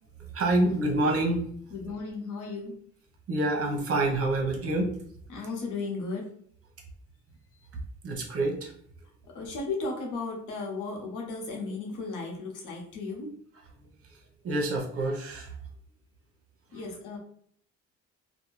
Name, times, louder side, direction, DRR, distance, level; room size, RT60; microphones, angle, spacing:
voice 1, 0.3-1.4 3.3-5.0 8.0-8.7 14.4-15.5 16.7-16.8, right 2 dB, 50° right, 2 dB, 0.8 m, -27 dB
voice 2, 1.7-2.8 5.3-6.3 9.3-13.3 16.7-17.2, left 3 dB, 90° left, 1 dB, 0.8 m, -35 dB
2.5 x 2.1 x 3.0 m, 0.62 s
cardioid pair, 90°, 30 cm